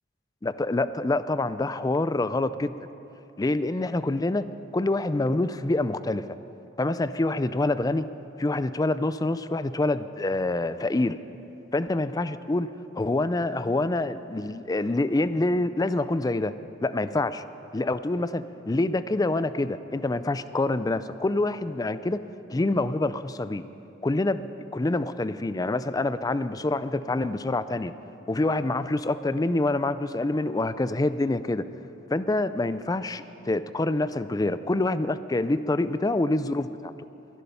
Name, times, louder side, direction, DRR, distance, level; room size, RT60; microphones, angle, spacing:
voice 1, 0.4-2.7 3.4-6.3 6.8-8.1 8.4-11.2 11.7-16.5 16.8-17.4 17.7-22.2 22.5-23.6 24.0-24.5 24.7-27.9 28.3-31.6 32.1-36.9, left 2 dB, 20° left, 14 dB, 0.4 m, -26 dB
22.0 x 11.0 x 5.6 m, 2.9 s
head